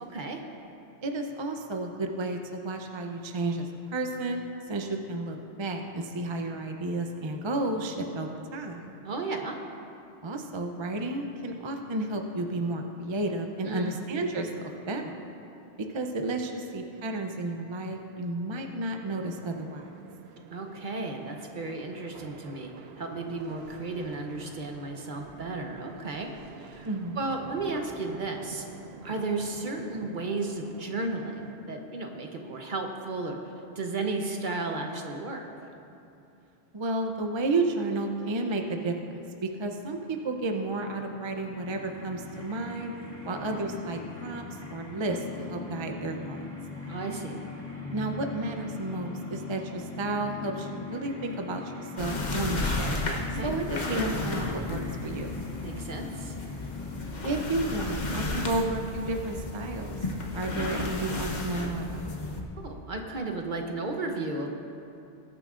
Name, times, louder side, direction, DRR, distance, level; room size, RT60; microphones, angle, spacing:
voice 1, 1.0-8.9 10.2-14.5 14.9-15.1 15.8-19.9 26.8-27.3 36.7-42.9 43.2-44.4 44.7-46.4 47.9-53.1 53.4-55.4 57.2-60.0 60.3-62.1, right 2 dB, 30° right, 4 dB, 0.6 m, -32 dB
voice 2, 9.0-9.6 13.6-14.0 20.5-22.7 23.0-26.3 26.6-26.9 27.2-28.6 29.0-33.4 33.7-35.5 46.9-47.4 53.3-53.5 55.6-56.4 62.6-64.5, right 3 dB, 50° right, 3 dB, 1.0 m, -34 dB
sound 1, 19.0-31.5, right 5 dB, 75° right, 0.9 m, -49 dB
sound 2, 40.9-57.5, left 4 dB, 15° left, 2.6 m, -41 dB
sound 3, 52.0-62.4, left 2 dB, 45° left, 1.0 m, -33 dB
21.0 x 9.0 x 2.5 m, 2.8 s
omnidirectional pair, 1.1 m